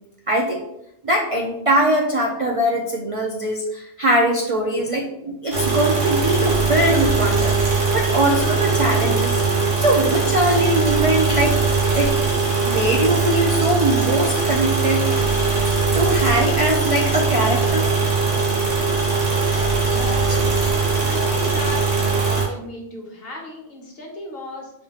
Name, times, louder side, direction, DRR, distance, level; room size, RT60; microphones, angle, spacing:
voice 1, 0.3-0.6 1.0-9.4 9.8-11.6 11.9-12.1 12.6-15.0 15.9-17.9, right 1 dB, 65° right, 0 dB, 0.3 m, -21 dB
sound 1, 5.5-22.4, right 4 dB, 85° right, 1.6 m, -20 dB
voice 2, 19.9-20.5 21.0-21.8 22.2-24.7, left 2 dB, 55° left, 0 dB, 1.1 m, -34 dB
5.3 x 2.8 x 2.9 m, 0.82 s
omnidirectional pair, 1.2 m